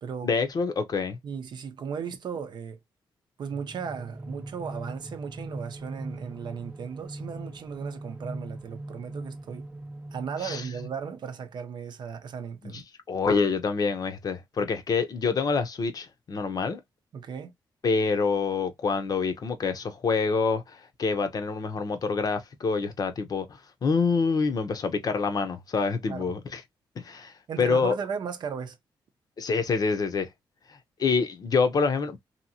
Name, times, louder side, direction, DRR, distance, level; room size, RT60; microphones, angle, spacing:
voice 1, 0.2-1.2 10.4-10.6 12.6-16.8 17.8-23.4 23.8-26.6 27.0-28.0 29.4-30.3 31.0-32.2, left 4 dB, 50° left, 0.7 m, -26 dB
voice 2, 1.2-2.8 3.4-9.7 10.1-12.8 17.1-17.5 26.1-26.3 27.5-28.8, right 6 dB, 60° right, 0.6 m, -36 dB
sound 1, 3.5-11.4, right 2 dB, 15° right, 0.5 m, -41 dB
2.9 x 2.7 x 2.7 m
cardioid pair, 100°, 8 cm